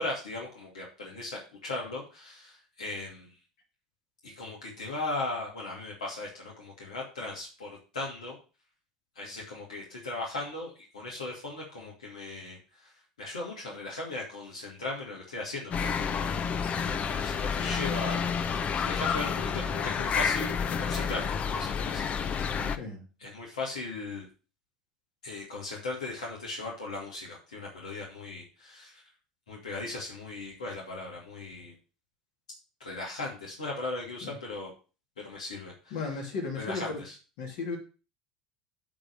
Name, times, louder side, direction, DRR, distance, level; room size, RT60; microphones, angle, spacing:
voice 1, 0.0-3.3 4.2-8.4 9.1-12.9 13.2-16.3 16.8-22.6 23.2-24.3 25.2-29.0 29.5-31.7 32.8-34.7 35.2-36.0 36.6-37.1, left 2 dB, 80° left, -3 dB, 2.5 m, -38 dB
sound 1, 15.7-22.8, left 6 dB, 35° left, 0.7 m, -30 dB
voice 2, 22.5-23.0 34.2-34.4 35.9-37.0 37.4-37.8, left 4 dB, 60° left, 2 dB, 2.9 m, -35 dB
8.7 x 4.0 x 6.6 m, 0.34 s
hypercardioid pair, 75°, 4 cm